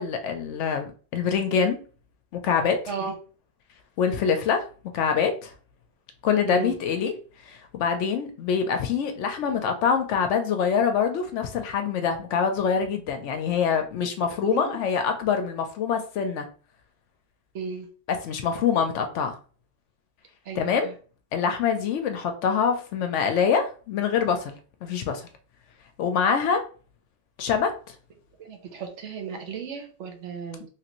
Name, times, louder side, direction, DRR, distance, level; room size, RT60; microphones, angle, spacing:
voice 1, 0.0-1.8 2.3-2.8 4.0-4.6 4.9-5.5 6.2-7.1 7.5-16.5 18.1-19.3 20.6-20.9 21.3-24.5 24.8-25.2 26.0-26.6 27.4-27.7, left 6 dB, 70° left, 6 dB, 0.9 m, -25 dB
voice 2, 14.4-14.8 17.5-17.9 20.5-20.9 28.4-30.7, right 5 dB, 65° right, 4 dB, 0.9 m, -34 dB
3.2 x 2.5 x 2.9 m, 0.39 s
omnidirectional pair, 1.3 m